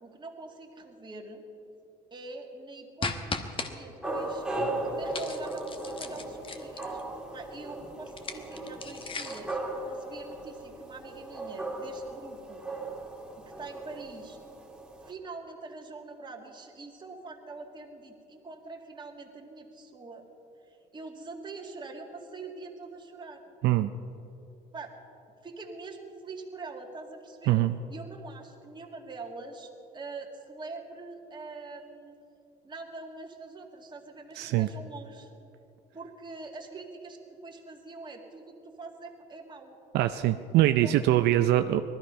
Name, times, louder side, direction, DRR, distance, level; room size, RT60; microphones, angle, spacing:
voice 1, 0.0-1.5 2.1-7.0 7.3-9.6 9.9-12.8 13.3-14.4 15.0-20.2 20.7-23.5 24.7-25.0 25.4-27.6 27.9-32.2 32.6-35.4 35.9-39.8 40.8-40.9, right 3 dB, 25° right, 1 dB, 2.1 m, -44 dB
sound 1, 3.0-3.7 5.1-7.0 8.1-9.5, left 4 dB, 30° left, 1.2 m, -36 dB
sound 2, 4.0-15.1, right 2 dB, 5° right, 2.3 m, -37 dB
voice 2, 34.4-34.7 39.9-41.8, right 14 dB, 80° right, 8 dB, 0.5 m, -23 dB
19.0 x 13.5 x 5.5 m, 2.8 s
cardioid pair, 110°, 17 cm